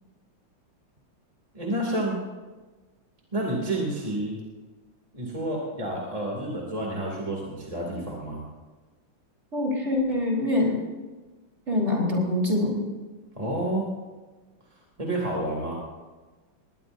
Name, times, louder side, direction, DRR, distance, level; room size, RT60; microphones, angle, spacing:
voice 1, 1.5-2.2 3.3-4.4 5.1-8.4 13.3-13.9 15.0-15.7, right 1 dB, 20° right, -2 dB, 2.6 m, -29 dB
voice 2, 9.5-10.8 11.7-12.8, left 2 dB, 35° right, -2 dB, 4.2 m, -24 dB
21.5 x 19.5 x 2.7 m, 1.3 s
omnidirectional pair, 2.2 m